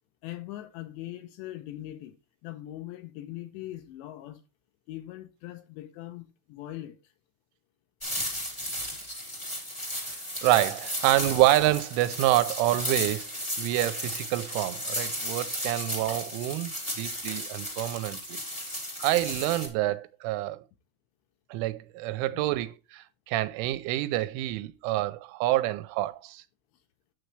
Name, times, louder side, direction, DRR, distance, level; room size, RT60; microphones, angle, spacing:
voice 1, 0.2-2.2 2.4-4.4 4.9-7.1 22.3-22.4, left 14 dB, 80° left, 2.8 m, -41 dB
sound 1, 8.0-19.7, equal, 25° left, 0.6 m, -34 dB
voice 2, 10.1-13.3 13.6-18.4 19.0-20.6 21.5-26.4, right 15 dB, 90° right, 3.1 m, -27 dB
9.4 x 7.8 x 3.2 m
omnidirectional pair, 5.5 m